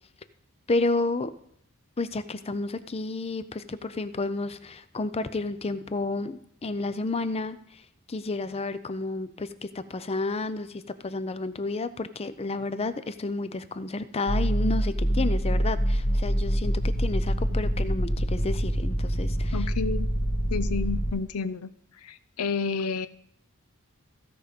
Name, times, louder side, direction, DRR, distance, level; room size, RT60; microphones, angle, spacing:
voice 1, 0.7-1.3 2.0-7.8 8.1-19.6, left 3 dB, 30° left, 13 dB, 0.5 m, -31 dB
sound 1, 14.3-21.1, equal, 65° left, 1.9 m, -26 dB
voice 2, 19.5-20.1 20.5-23.1, left 5 dB, 90° left, 13 dB, 0.5 m, -31 dB
15.5 x 5.3 x 5.1 m, 0.69 s
head